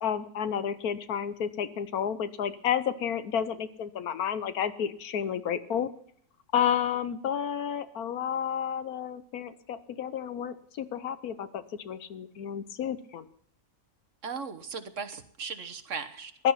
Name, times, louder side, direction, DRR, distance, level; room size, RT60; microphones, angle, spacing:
voice 1, 0.0-5.9 6.5-13.3 16.4-16.5, left 8 dB, 70° left, 13 dB, 1.3 m, -31 dB
voice 2, 14.2-16.3, right 5 dB, 55° right, 8 dB, 1.5 m, -37 dB
16.0 x 12.0 x 5.7 m, 0.63 s
omnidirectional pair, 1.7 m